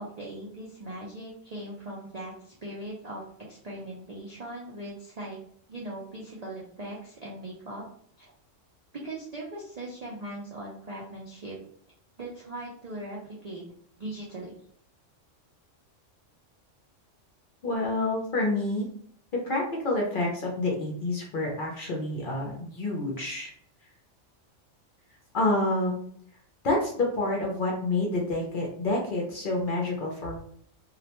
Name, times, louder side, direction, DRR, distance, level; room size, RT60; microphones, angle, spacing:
voice 1, 0.0-3.2 3.5-5.4 5.7-7.8 8.2-8.3 9.0-11.6 12.2-13.6 14.0-14.6, right 1 dB, 60° right, -5 dB, 0.4 m, -39 dB
voice 2, 17.6-18.9 19.4-23.5 25.3-26.0 26.6-30.4, left 2 dB, 55° left, -2 dB, 0.6 m, -28 dB
2.3 x 2.1 x 2.8 m, 0.63 s
omnidirectional pair, 1.3 m